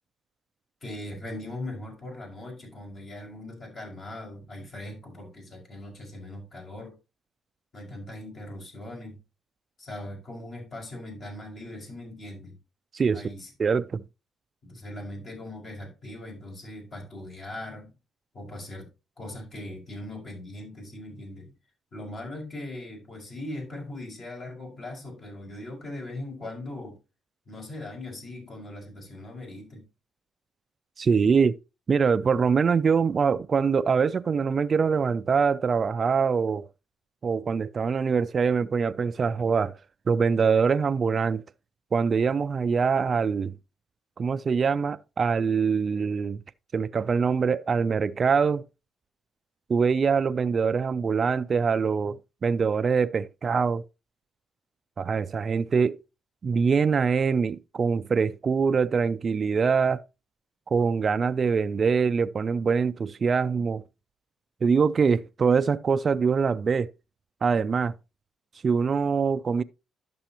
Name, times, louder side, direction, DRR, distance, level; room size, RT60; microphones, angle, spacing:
voice 1, 0.8-7.0 7.7-9.2 9.8-12.5 13.1-13.5 14.6-17.9 18.3-18.9 19.2-21.5 21.9-27.0 27.5-29.8, left 1 dB, 50° left, 5.4 m, -40 dB
voice 2, 13.6-14.0 31.0-31.6 31.9-36.7 37.2-39.8 40.1-41.4 41.9-43.5 44.2-46.4 46.7-48.6 49.7-53.8 55.0-56.0 56.4-60.0 60.7-63.8 64.6-66.9 67.4-67.9 68.6-69.6, right 5 dB, 40° right, 0.3 m, -24 dB
11.5 x 6.8 x 2.9 m
cardioid pair, 90°, 0 cm